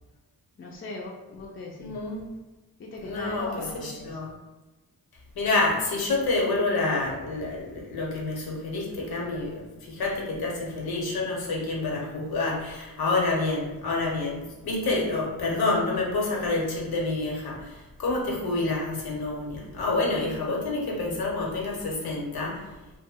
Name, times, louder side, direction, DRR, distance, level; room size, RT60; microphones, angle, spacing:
voice 1, 0.6-2.0 2.8-4.2, left 2 dB, 35° left, -3 dB, 0.4 m, -39 dB
voice 2, 1.8-2.3 3.0-3.5 3.8-4.3 5.3-22.7, left 2 dB, 80° left, -2 dB, 0.9 m, -28 dB
2.7 x 2.1 x 3.4 m, 1.1 s
wide cardioid pair, 105°, 37 cm